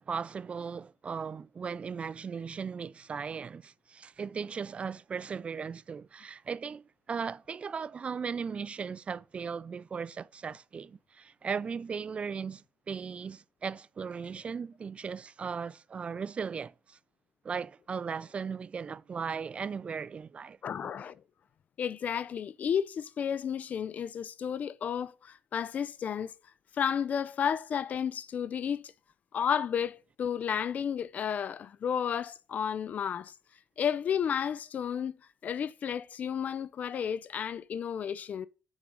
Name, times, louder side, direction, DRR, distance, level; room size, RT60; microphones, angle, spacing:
voice 1, 0.0-17.0 17.4-20.6, right 6 dB, 40° right, 0.3 m, -37 dB
voice 2, 20.6-21.2 21.8-26.3 26.7-28.8 29.3-33.3 33.8-35.1 35.4-38.5, left 8 dB, 55° left, 0.5 m, -32 dB
7.2 x 5.2 x 6.2 m
cardioid pair, 80°, 3 cm